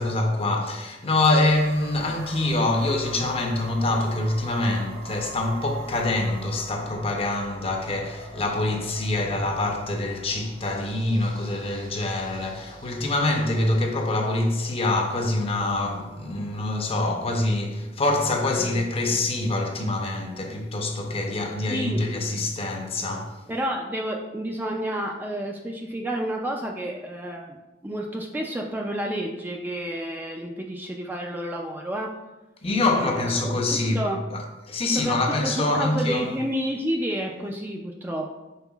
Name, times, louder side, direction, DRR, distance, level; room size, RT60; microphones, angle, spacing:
voice 1, 0.0-23.4 32.6-36.3, left 2 dB, 35° left, 0.6 m, -25 dB
sound 1, 1.4-17.1, right 1 dB, 55° right, 0.8 m, -44 dB
voice 2, 21.7-22.3 23.5-32.1 33.0-34.2 34.9-38.3, right 1 dB, 10° right, 0.3 m, -30 dB
5.4 x 4.1 x 2.3 m
head